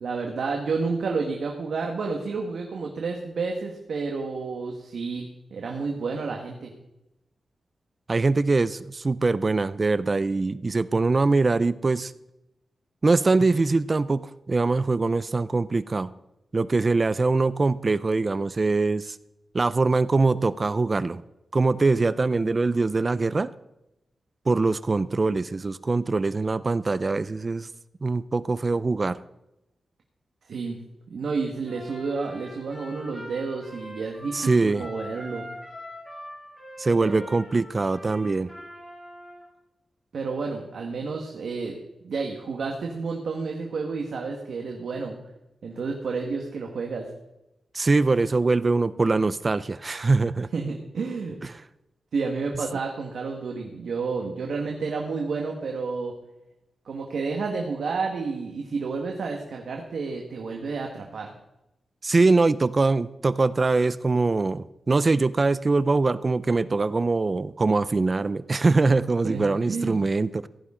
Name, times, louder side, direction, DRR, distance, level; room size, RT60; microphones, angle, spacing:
voice 1, 0.0-5.2 5.5-6.7 30.5-30.8 31.1-35.4 37.0-37.3 40.1-41.7 42.0-45.2 45.6-47.1 50.5-51.4 52.1-56.1 56.8-61.3 69.2-70.0, right 4 dB, 70° right, 1 dB, 1.6 m, -30 dB
voice 2, 8.1-12.1 13.0-16.1 16.5-19.2 19.5-21.2 21.5-23.5 24.5-27.7 28.0-29.2 34.3-34.9 36.8-38.5 47.7-50.5 62.0-70.5, right 3 dB, 30° right, 16 dB, 0.4 m, -23 dB
Trumpet, 31.6-39.4, equal, 15° left, 6.2 m, -42 dB
16.0 x 14.0 x 3.8 m, 0.91 s
wide cardioid pair, 160°, 0 cm